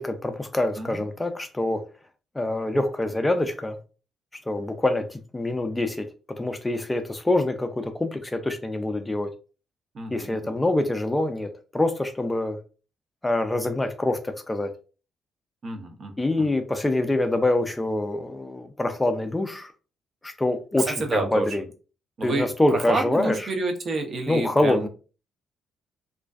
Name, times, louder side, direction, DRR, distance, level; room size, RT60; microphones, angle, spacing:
voice 1, 0.0-1.8 2.3-3.8 4.5-9.3 10.1-12.6 13.2-14.7 16.2-19.7 20.2-21.6 22.2-23.5 24.3-24.9, left 1 dB, 15° left, 0.3 m, -25 dB
voice 2, 9.9-10.5 15.6-16.5 20.8-21.6 22.2-22.5 22.7-24.9, right 3 dB, 50° right, 0.6 m, -29 dB
2.5 x 2.2 x 2.3 m
cardioid pair, 90°, 0 cm